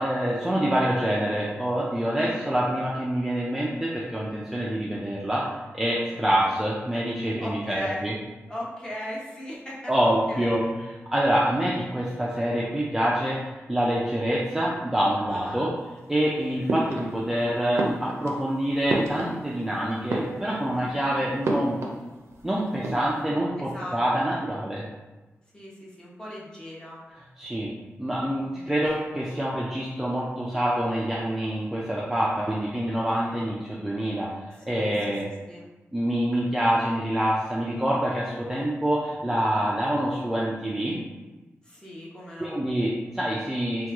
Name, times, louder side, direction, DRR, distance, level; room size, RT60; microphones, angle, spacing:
voice 1, 0.0-5.4 5.7-8.1 9.9-13.4 13.7-15.7 16.1-21.8 22.4-24.8 27.4-27.7 28.0-34.3 34.7-35.3 35.9-41.0 42.4-43.9, right 1 dB, 5° right, -6 dB, 0.3 m, -26 dB
voice 2, 2.2-2.5 6.3-6.6 7.4-8.1 8.5-9.9 10.3-10.6 15.3-15.7 16.4-16.6 20.7-21.1 23.7-24.0 25.5-27.0 28.4-28.7 34.7-35.1 35.5-35.7 41.6-42.6, left 1 dB, 15° left, -6 dB, 0.7 m, -38 dB
sound 1, 16.7-17.4 17.7-19.7 20.0-20.8 21.4-22.4 22.7-23.2, right 2 dB, 75° right, 0.4 m, -31 dB
3.0 x 2.3 x 3.4 m, 1.2 s
wide cardioid pair, 170°, 5 cm